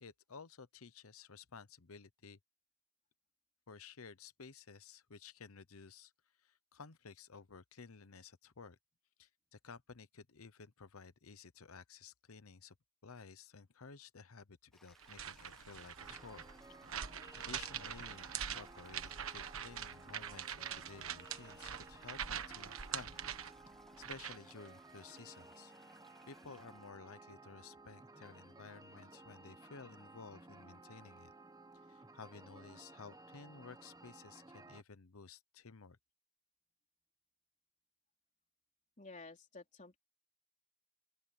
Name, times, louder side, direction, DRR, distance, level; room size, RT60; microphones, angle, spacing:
voice 1, 0.0-2.4 3.7-6.1 6.4-8.8 9.2-12.8 13.0-16.5 16.9-17.1 17.3-23.2 24.0-25.7 26.2-31.3 31.9-36.0, left 5 dB, 80° left, 0.9 m, -54 dB
Toilet flush, 14.7-26.9, equal, ahead, 1.5 m, -66 dB
sound 1, 15.0-24.5, right 8 dB, 70° right, 1.4 m, -44 dB
sound 2, 16.0-34.8, right 2 dB, 15° right, 1.5 m, -57 dB
voice 2, 39.0-40.0, left 3 dB, 35° left, 3.8 m, -52 dB
open air
head